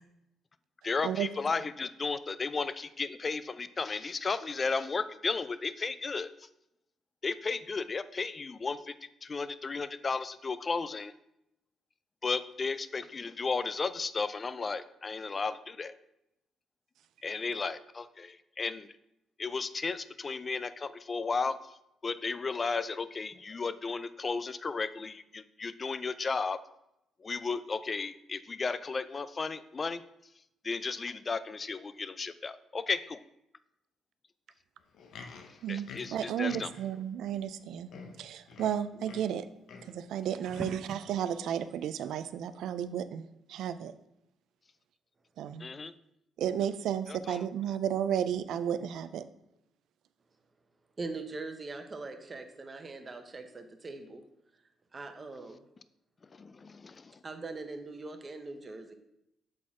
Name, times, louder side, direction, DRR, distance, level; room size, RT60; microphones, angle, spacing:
voice 1, 0.8-6.5 7.2-8.9 9.2-11.1 12.2-16.0 17.2-18.9 19.4-21.6 22.0-26.6 27.2-30.0 30.6-33.2 35.7-36.7 45.6-45.9 47.1-47.5 56.3-57.2, left 4 dB, 35° left, 14 dB, 0.3 m, -34 dB
Livestock farm animals working animals, 34.8-37.0 37.6-37.7 37.9-39.4 39.7-40.0 40.5-40.9 41.5-41.6, left 4 dB, 75° left, 0.7 m, -48 dB
voice 2, 35.6-37.9 38.2-39.4 39.8-43.2 43.5-43.9 45.4-45.7 46.4-49.2, right 9 dB, 80° right, 13 dB, 0.3 m, -33 dB
voice 3, 40.4-40.9 51.0-54.2 54.9-55.6 57.2-58.9, right 3 dB, 30° right, 6 dB, 0.8 m, -41 dB
7.5 x 4.1 x 3.6 m, 0.83 s
cardioid pair, 90°, 0 cm